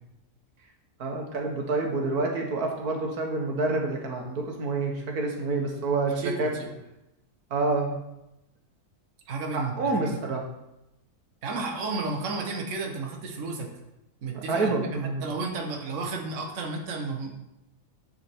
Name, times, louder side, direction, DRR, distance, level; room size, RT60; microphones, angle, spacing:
voice 1, 1.0-6.5 7.5-7.9 9.5-10.4 14.3-15.2, right 3 dB, 80° right, 1 dB, 1.7 m, -28 dB
voice 2, 6.2-6.7 9.3-10.2 11.4-13.7 14.2-17.3, right 3 dB, 60° right, 1 dB, 1.3 m, -32 dB
9.7 x 4.4 x 4.4 m, 0.88 s
omnidirectional pair, 1.6 m